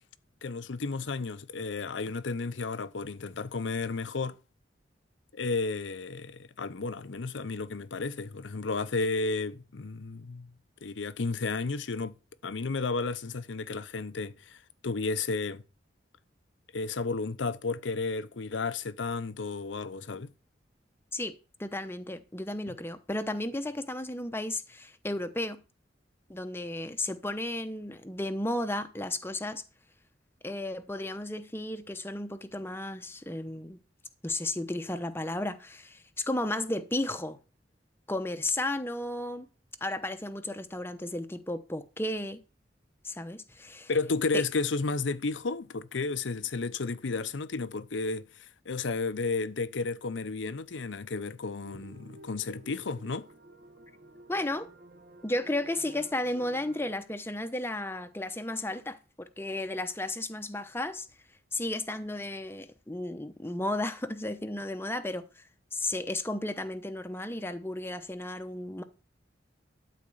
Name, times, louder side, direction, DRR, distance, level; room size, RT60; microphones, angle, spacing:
voice 1, 0.4-4.4 5.3-10.5 10.8-12.2 12.4-15.6 16.7-20.3 22.7-22.8 43.9-53.3, left 3 dB, 80° left, 0.7 m, -32 dB
voice 2, 21.6-25.6 26.3-29.6 30.4-33.8 34.2-37.4 38.1-39.5 39.8-42.4 43.0-43.9 44.3-44.4 54.3-54.7 55.2-61.1 61.5-65.4 65.7-68.8, left 1 dB, 15° left, 0.9 m, -34 dB
sound 1, 51.6-56.9, right 2 dB, 55° right, 1.4 m, -53 dB
12.5 x 4.3 x 7.8 m
head